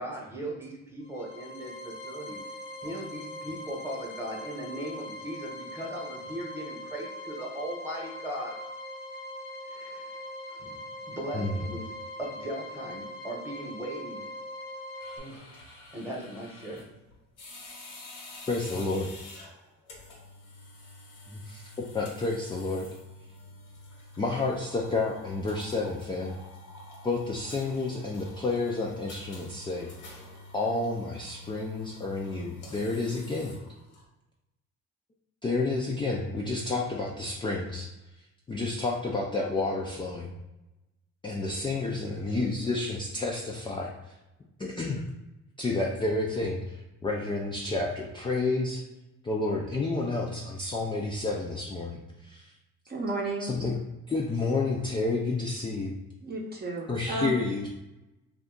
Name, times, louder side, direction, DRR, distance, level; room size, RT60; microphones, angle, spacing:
voice 1, 0.0-2.4 2.8-8.6 9.7-10.2 10.5-10.8 11.1-11.9 12.2-14.2 15.2-15.5 15.9-16.8, right 1 dB, 10° right, -2 dB, 0.9 m, -38 dB
sound 1, 1.0-15.2, left 1 dB, 55° left, 0.8 m, -41 dB
sound 2, 15.0-34.0, left 2 dB, 85° left, 1.1 m, -48 dB
voice 2, 18.5-19.1 21.3-21.6 21.9-22.9 24.2-26.4 27.0-29.9 30.5-33.5 35.4-37.9 38.5-40.3 41.2-44.2 44.6-45.0 45.6-48.8 49.2-52.5 53.4-53.7 54.1-55.9 56.9-57.7, left 3 dB, 15° left, -2 dB, 0.3 m, -30 dB
voice 3, 52.9-53.7 56.2-57.4, right 2 dB, 30° right, -2 dB, 0.7 m, -33 dB
2.6 x 2.3 x 3.7 m, 0.99 s
cardioid pair, 95°, 31 cm